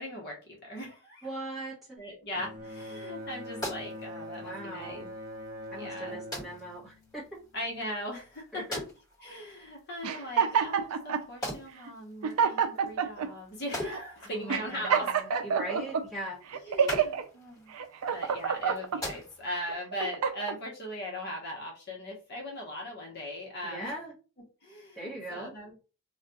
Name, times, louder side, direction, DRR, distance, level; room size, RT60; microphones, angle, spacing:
voice 1, 0.0-1.3 2.0-5.1 5.8-6.2 7.5-8.6 9.2-15.1 16.6-17.7 18.1-23.9 24.6-25.7, left 1 dB, 45° left, -2 dB, 0.9 m, -39 dB
voice 2, 1.2-2.0 4.4-5.1 5.7-7.2 8.5-8.8 14.3-16.4 23.6-24.1 24.9-25.5, right 1 dB, ahead, -6 dB, 1.2 m, -40 dB
Bowed string instrument, 2.3-7.8, left 1 dB, 15° right, 0.8 m, -43 dB
sound 1, 3.1-19.7, left 1 dB, 15° left, 1.3 m, -44 dB
sound 2, 10.0-11.2 11.9-12.0 12.2-13.3 13.9-14.0 14.5-16.0 16.5-17.2 17.7-19.0 19.6-20.6, right 7 dB, 80° right, 0.4 m, -28 dB
2.3 x 2.3 x 3.9 m, 0.34 s
head